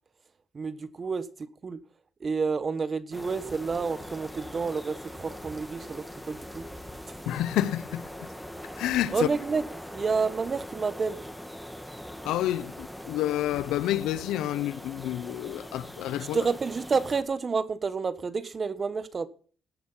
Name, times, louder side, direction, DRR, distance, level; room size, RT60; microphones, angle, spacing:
voice 1, 0.5-1.3 1.6-1.8 2.2-6.6 9.1-9.6 9.9-11.2 16.3-19.3, right 5 dB, 35° right, 1.2 m, -29 dB
sound 1, 3.1-17.2, equal, ahead, 2.5 m, -42 dB
voice 2, 7.3-8.3 8.7-9.3 12.2-16.5, left 13 dB, 90° left, 0.6 m, -29 dB
16.5 x 8.9 x 5.6 m
cardioid pair, 90°, 0 cm